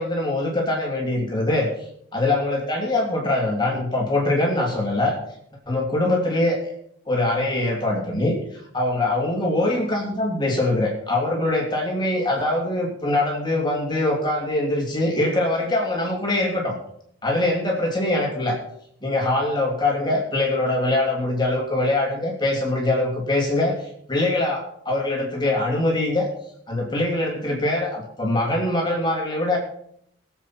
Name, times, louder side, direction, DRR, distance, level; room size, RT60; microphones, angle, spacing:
voice 1, 0.0-1.7 2.1-5.2 5.7-6.6 7.1-16.7 17.2-18.6 19.0-26.3 26.7-29.6, left 2 dB, 25° left, -1 dB, 3.0 m, -23 dB
21.5 x 7.8 x 4.7 m, 0.70 s
head